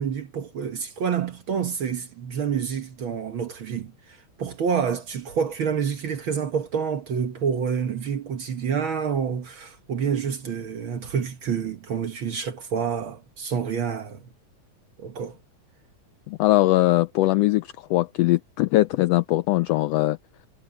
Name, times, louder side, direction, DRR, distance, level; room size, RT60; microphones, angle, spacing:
voice 1, 0.0-14.2 15.0-15.4, right 7 dB, 55° right, 1.6 m, -28 dB
voice 2, 16.3-20.2, left 18 dB, 80° left, 1.4 m, -21 dB
omnidirectional pair, 3.3 m